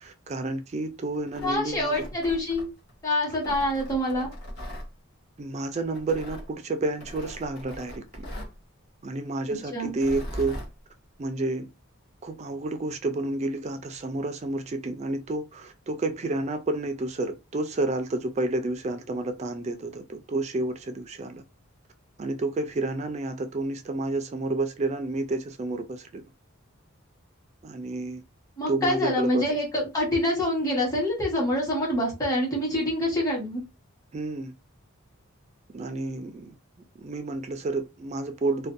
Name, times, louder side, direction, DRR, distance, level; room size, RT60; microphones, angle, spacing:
voice 1, 0.0-2.1 5.4-8.0 9.0-10.6 11.2-11.7 12.2-21.4 22.2-26.2 27.6-28.2 28.7-29.6 34.1-34.5 35.7-36.5 37.0-38.7, right 2 dB, 30° right, 0.3 m, -30 dB
Tearing, 1.1-2.9 3.4-4.9 6.0-6.5 7.0-8.6 9.9-10.7, equal, 65° left, 1.0 m, -39 dB
voice 2, 1.4-2.7 3.0-4.3 9.7-9.9 28.6-33.6, left 1 dB, 15° left, 1.1 m, -26 dB
2.5 x 2.2 x 2.5 m
head